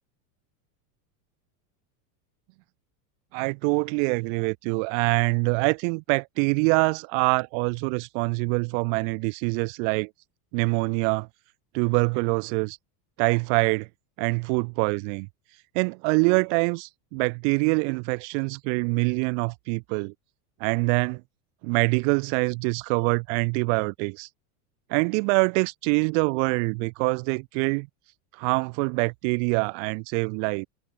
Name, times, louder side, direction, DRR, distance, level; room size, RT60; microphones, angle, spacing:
voice 1, 3.3-10.1 10.5-11.3 11.7-12.8 13.2-13.9 14.2-15.3 15.7-20.1 20.6-21.2 21.6-24.3 24.9-27.9 28.4-30.7, right 39 dB, 50° right, 6.3 m, -25 dB
supercardioid pair, 165°, 46 cm